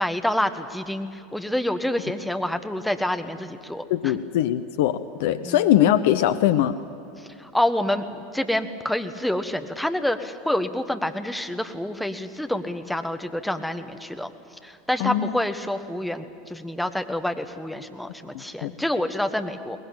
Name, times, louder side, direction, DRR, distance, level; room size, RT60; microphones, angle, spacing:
voice 1, 0.0-4.2 5.4-5.7 7.2-14.3 14.6-19.8, left 1 dB, 5° left, 8 dB, 1.3 m, -27 dB
voice 2, 3.9-6.8 15.0-15.3 18.6-18.7, left 12 dB, 60° left, 12 dB, 0.6 m, -21 dB
22.5 x 19.5 x 8.9 m, 2.8 s
figure-of-eight pair, 80°, 0 cm